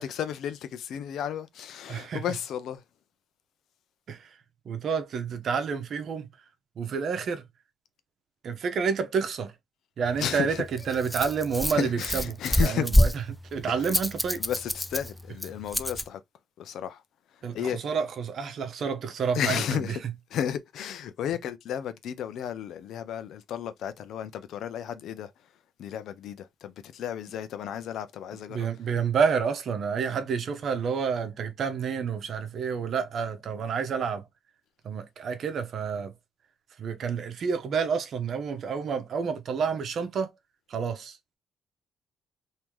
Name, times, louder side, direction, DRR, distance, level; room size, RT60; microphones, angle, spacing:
voice 1, 0.0-2.8 10.2-10.6 10.9-11.0 11.7-12.8 14.4-16.2 16.6-17.0 17.5-17.8 19.3-20.0 20.3-25.3 25.8-28.7, left 9 dB, 75° left, 0.6 m, -33 dB
voice 2, 1.9-2.2 4.1-4.4 4.6-6.3 6.8-7.4 8.4-9.5 10.0-14.4 17.4-20.1 28.5-34.3 34.8-36.1 36.8-40.3 40.7-41.2, right 6 dB, 60° right, 0.9 m, -29 dB
Rattle, 10.0-16.1, left 1 dB, 5° left, 0.4 m, -27 dB
3.0 x 2.8 x 3.6 m
cardioid pair, 90°, 0 cm